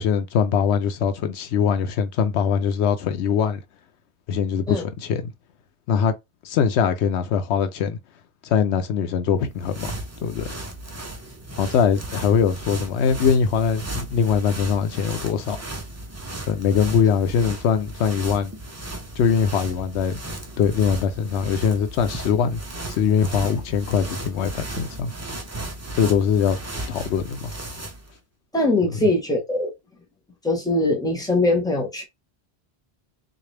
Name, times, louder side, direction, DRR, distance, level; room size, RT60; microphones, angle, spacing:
voice 1, 0.0-3.6 4.3-5.2 5.9-6.1 6.4-8.0 8.4-9.9 10.2-10.5 11.6-15.6 16.5-18.5 19.2-20.2 20.6-22.6 22.9-25.1 25.9-26.6 26.9-27.5 28.9-29.0, left 7 dB, 85° left, 0.9 m, -22 dB
sound 1, 9.4-28.1, right 1 dB, 20° right, 0.5 m, -35 dB
voice 2, 28.5-29.7 30.4-32.0, left 2 dB, 5° left, 1.0 m, -21 dB
3.8 x 2.5 x 3.3 m
omnidirectional pair, 1.1 m